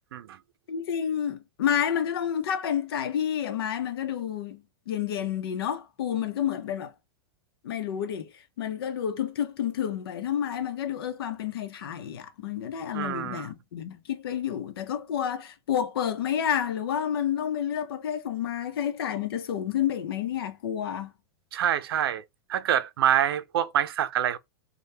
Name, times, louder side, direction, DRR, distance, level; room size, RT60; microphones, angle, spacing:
voice 1, 0.7-6.9 7.6-21.1, left 9 dB, 80° left, 0.8 m, -30 dB
voice 2, 12.9-13.5 21.5-22.2 22.5-24.4, right 10 dB, 85° right, 0.5 m, -26 dB
3.3 x 2.3 x 2.7 m
supercardioid pair, 145°, 12 cm